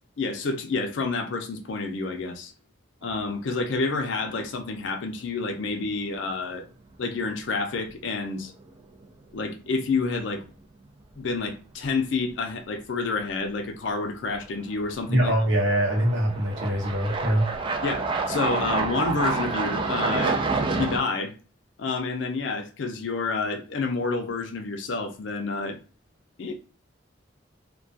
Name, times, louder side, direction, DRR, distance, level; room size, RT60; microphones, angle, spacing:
voice 1, 0.2-2.5 3.0-6.7 7.0-8.5 9.3-10.4 11.2-15.3 17.8-20.4 20.7-21.3 21.8-25.8 26.4-26.5, left 3 dB, 80° left, 0.4 m, -29 dB
sound 1, 3.0-3.7 4.0-4.1 7.0-7.1 8.5-8.7 9.0-9.1 14.5-14.6 15.3-21.0, right 3 dB, 25° right, 0.3 m, -28 dB
voice 2, 15.1-17.5, right 1 dB, 80° right, 0.9 m, -23 dB
2.2 x 2.2 x 2.5 m
head